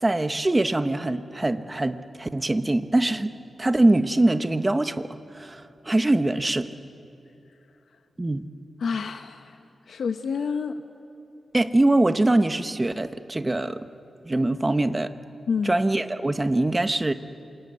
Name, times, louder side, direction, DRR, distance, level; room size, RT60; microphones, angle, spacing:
voice 1, 0.0-6.7 8.2-8.5 11.5-13.9 14.2-15.1 15.6-17.1, right 2 dB, 20° right, 10 dB, 1.1 m, -23 dB
voice 2, 8.8-9.6 9.9-10.8 15.5-15.8, left 5 dB, 85° left, 7 dB, 0.9 m, -28 dB
27.0 x 22.0 x 9.6 m, 2.7 s
wide cardioid pair, 110°, 0 cm